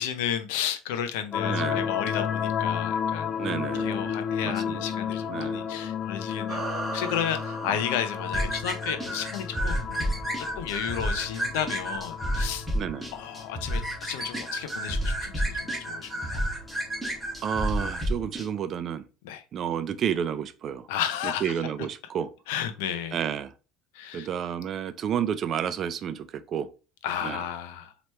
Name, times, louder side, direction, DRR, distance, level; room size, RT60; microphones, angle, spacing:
voice 1, 0.0-3.3 3.8-10.0 10.4-12.7 13.1-16.5 19.2-19.4 20.9-21.5 22.5-23.2 23.9-24.3 27.0-27.9, left 9 dB, 85° left, 0.6 m, -33 dB
sound 1, 1.3-17.9, left 7 dB, 40° left, 0.4 m, -33 dB
voice 2, 1.4-1.9 3.4-4.1 4.4-5.6 7.6-7.8 12.7-13.1 17.4-19.1 19.5-20.9 21.2-22.3 23.1-23.5 24.1-26.7 27.2-27.4, right 8 dB, 45° right, 0.4 m, -31 dB
sound 2, 6.5-9.2, right 3 dB, 25° right, 2.1 m, -37 dB
sound 3, 8.3-18.5, right 1 dB, 5° right, 1.6 m, -31 dB
4.5 x 3.0 x 3.1 m
supercardioid pair, 110°, 0 cm